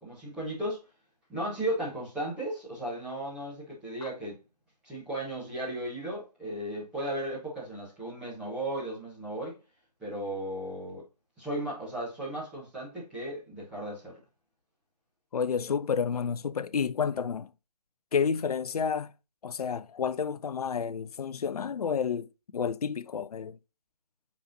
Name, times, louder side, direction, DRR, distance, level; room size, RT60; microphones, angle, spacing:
voice 1, 0.0-0.8 1.3-4.4 4.8-9.6 10.0-11.0 11.4-14.2, right 1 dB, 5° right, 1.1 m, -35 dB
voice 2, 15.3-17.5 18.1-19.1 19.4-23.6, left 6 dB, 65° left, 0.4 m, -30 dB
8.3 x 4.2 x 2.7 m
figure-of-eight pair, 155°, 21 cm